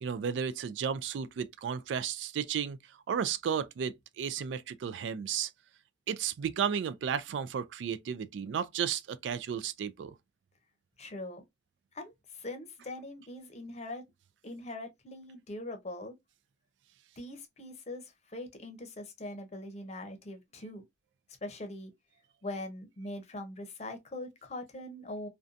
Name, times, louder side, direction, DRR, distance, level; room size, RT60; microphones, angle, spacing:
voice 1, 0.0-2.8 3.1-5.5 6.1-10.1, right 7 dB, 90° right, 0.3 m, -33 dB
voice 2, 11.0-11.4 11.9-14.1 14.4-16.1 17.2-20.8 21.4-21.9 22.4-25.3, left 1 dB, 35° left, 0.6 m, -42 dB
2.6 x 2.2 x 2.4 m
head